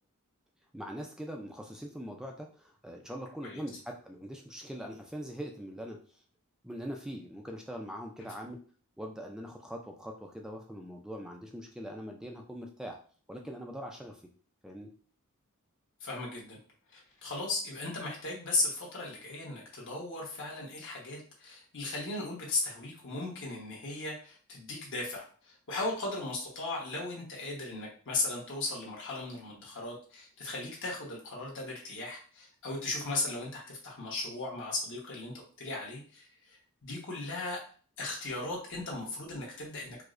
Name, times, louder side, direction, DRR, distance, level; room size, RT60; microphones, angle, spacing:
voice 1, 0.7-6.2 6.6-8.6 9.0-13.0 13.3-14.2 14.6-14.9, equal, 5° right, 2 dB, 0.3 m, -42 dB
voice 2, 16.0-16.6 16.9-37.6 38.0-40.0, left 2 dB, 55° left, -3 dB, 1.2 m, -37 dB
4.7 x 2.1 x 2.5 m, 0.42 s
head